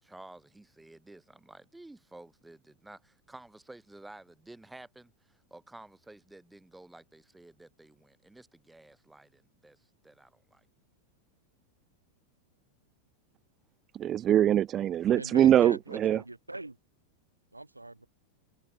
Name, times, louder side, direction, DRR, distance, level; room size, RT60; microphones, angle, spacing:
voice 1, 0.0-10.7, right 2 dB, 5° right, 4.0 m, -52 dB
voice 2, 13.9-16.2, right 11 dB, 30° right, 0.3 m, -23 dB
voice 3, 15.1-16.7 17.5-18.1, right 2 dB, 85° right, 0.9 m, -41 dB
figure-of-eight pair, 90°, 0 cm